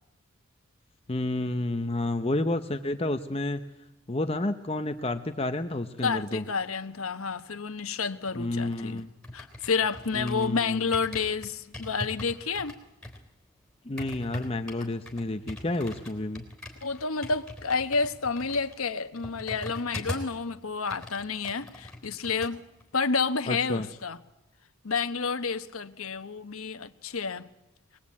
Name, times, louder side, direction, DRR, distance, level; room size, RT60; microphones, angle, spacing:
voice 1, 1.1-3.6 4.1-6.4 8.4-9.1 10.1-10.9 13.8-16.5 23.5-23.9, left 2 dB, 30° left, 0.8 m, -30 dB
voice 2, 6.0-9.0 9.3-12.7 16.8-22.6 22.9-24.2 24.8-27.5, left 5 dB, 85° left, 1.1 m, -30 dB
sound 1, 8.3-10.6 10.9-20.4 20.7-22.5 22.8-23.1, left 1 dB, 5° left, 3.6 m, -42 dB
23.5 x 20.5 x 8.6 m
head